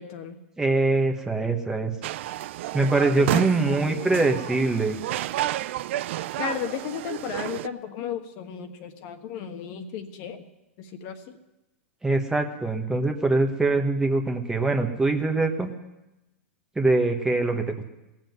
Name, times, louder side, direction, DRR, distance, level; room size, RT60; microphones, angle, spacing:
voice 1, 0.0-0.4 3.2-3.4 6.4-10.4 10.8-11.4, left 8 dB, 50° left, 6 dB, 1.4 m, -34 dB
voice 2, 0.6-1.9 2.7-5.0 12.0-15.7 16.8-17.8, right 2 dB, 10° right, 4 dB, 1.3 m, -23 dB
sound 1, 2.0-7.7, right 14 dB, 65° right, 0.4 m, -31 dB
17.5 x 7.6 x 9.4 m, 0.99 s
hypercardioid pair, 120°, 7 cm